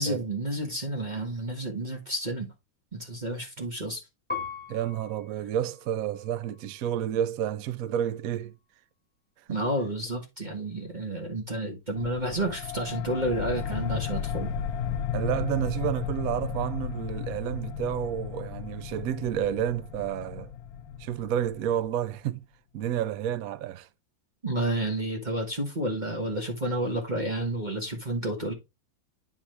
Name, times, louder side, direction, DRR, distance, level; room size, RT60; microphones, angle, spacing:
voice 1, 0.0-2.5 2.9-4.0 9.5-14.5 24.4-28.5, right 1 dB, 25° right, 1.4 m, -30 dB
Piano, 4.3-7.0 7.7-8.4, left 5 dB, 5° left, 1.0 m, -41 dB
voice 2, 4.7-8.5 9.5-9.6 15.1-20.5 21.0-22.4 22.7-23.9, right 10 dB, 75° right, 0.8 m, -30 dB
sound 1, 12.0-22.1, left 8 dB, 75° left, 0.8 m, -34 dB
9.8 x 4.0 x 3.2 m
omnidirectional pair, 2.1 m